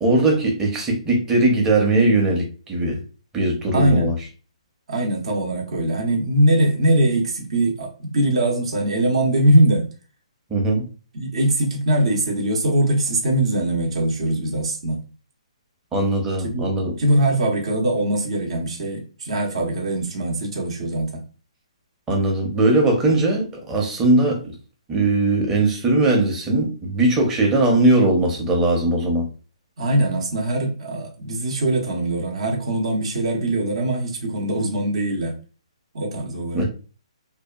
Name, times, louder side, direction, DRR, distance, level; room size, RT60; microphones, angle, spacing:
voice 1, 0.0-3.0 3.3-4.1 10.5-10.9 15.9-16.9 22.1-24.4 24.9-29.3 36.5-36.6, right 2 dB, 15° right, 0.7 m, -19 dB
voice 2, 3.7-4.1 4.9-9.9 11.1-15.0 16.4-16.7 17.0-21.2 29.8-35.4 35.9-36.6, right 1 dB, 60° right, 0.7 m, -21 dB
2.7 x 2.3 x 2.3 m
hypercardioid pair, 140°, 3 cm